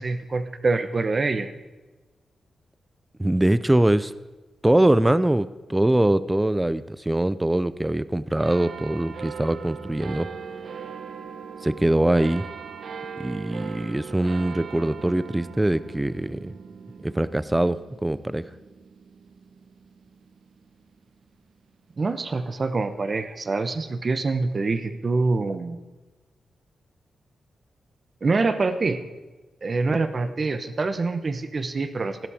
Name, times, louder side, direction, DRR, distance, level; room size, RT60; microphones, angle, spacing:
voice 1, 0.0-1.5 22.0-25.8 28.2-29.0 29.6-32.3, right 3 dB, 35° right, 10 dB, 0.9 m, -25 dB
voice 2, 3.2-4.1 4.6-10.3 11.6-12.5 13.2-16.5 17.0-18.5, right 1 dB, 10° right, 15 dB, 0.4 m, -22 dB
sound 1, 8.4-21.3 21.9-22.0, right 6 dB, 65° right, 0.8 m, -40 dB
15.0 x 12.0 x 5.0 m, 1.2 s
wide cardioid pair, 150°, 0 cm